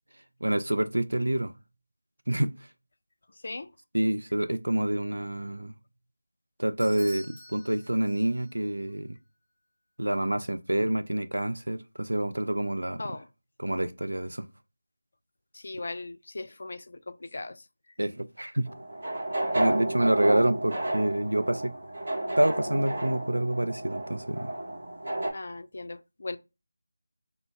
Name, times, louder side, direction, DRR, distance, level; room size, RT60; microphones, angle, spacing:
voice 1, 0.4-1.5 2.3-2.5 3.9-5.7 6.6-9.2 10.0-13.0 13.6-14.5 18.0-18.7 19.5-21.7 22.4-24.5, right 1 dB, 75° right, 0.4 m, -27 dB
voice 2, 3.3-3.7 13.0-13.3 15.5-17.7 25.3-26.4, left 2 dB, 50° left, 0.3 m, -38 dB
Bell / Doorbell, 6.8-8.6, equal, 15° right, 1.5 m, -47 dB
sound 1, 18.7-25.3, right 1 dB, 45° right, 1.0 m, -31 dB
3.9 x 2.0 x 3.3 m
figure-of-eight pair, 165°, 0 cm